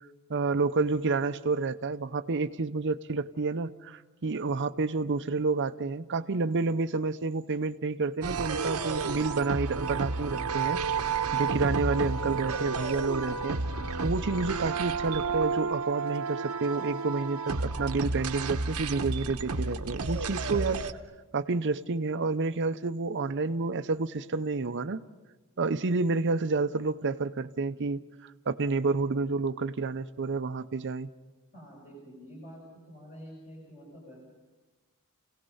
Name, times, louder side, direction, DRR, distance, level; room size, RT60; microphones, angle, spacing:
voice 1, 0.3-10.8 11.3-13.6 13.9-20.8 21.3-25.0 25.6-31.1, right 3 dB, 55° right, 11 dB, 0.7 m, -29 dB
sound 1, 8.2-20.9, right 4 dB, 85° right, 1.0 m, -31 dB
voice 2, 31.5-32.6 32.9-34.2, equal, 35° left, -4 dB, 5.9 m, -47 dB
29.5 x 17.5 x 5.6 m, 1.2 s
head